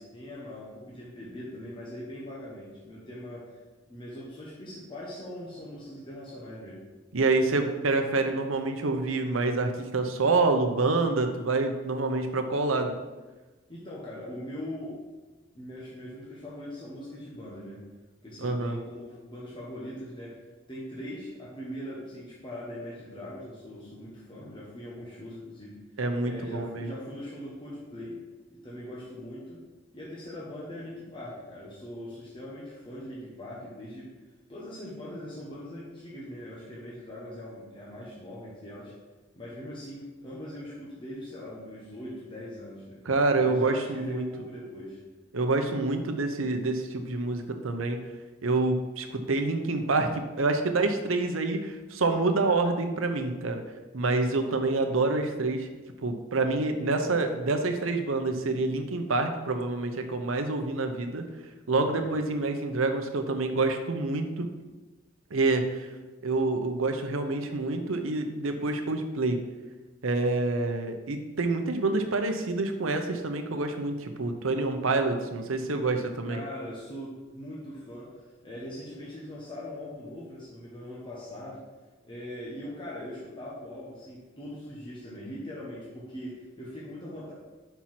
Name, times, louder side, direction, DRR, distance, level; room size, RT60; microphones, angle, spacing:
voice 1, 0.0-3.5 3.9-6.8 13.7-15.0 15.5-17.8 18.2-20.4 20.7-25.7 26.2-28.2 28.5-29.6 29.9-34.1 34.5-38.9 39.4-43.0 43.4-45.0 61.7-62.1 76.3-81.6 82.0-87.3, left 1 dB, 25° left, -6 dB, 1.3 m, -41 dB
voice 2, 7.1-13.0 18.4-18.8 26.0-26.9 43.0-44.3 45.3-48.0 48.4-53.6 53.9-55.7 56.0-61.3 61.7-64.5 65.3-65.9 66.2-69.4 70.0-76.4, right 3 dB, 85° right, 6 dB, 0.8 m, -27 dB
5.6 x 4.6 x 5.8 m, 1.2 s
head